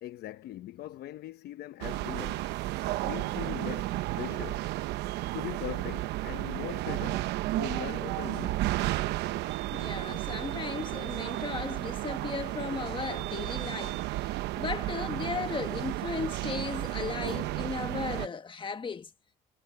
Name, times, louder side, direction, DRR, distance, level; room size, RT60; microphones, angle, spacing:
voice 1, 0.0-2.5 3.0-4.7 5.3-7.3 7.6-8.7, left 13 dB, 70° left, 0.9 m, -41 dB
sound 1, 1.8-18.3, right 17 dB, 85° right, 0.9 m, -33 dB
voice 2, 9.7-19.1, left 5 dB, 30° left, 1.7 m, -36 dB
cardioid pair, 110°, 17 cm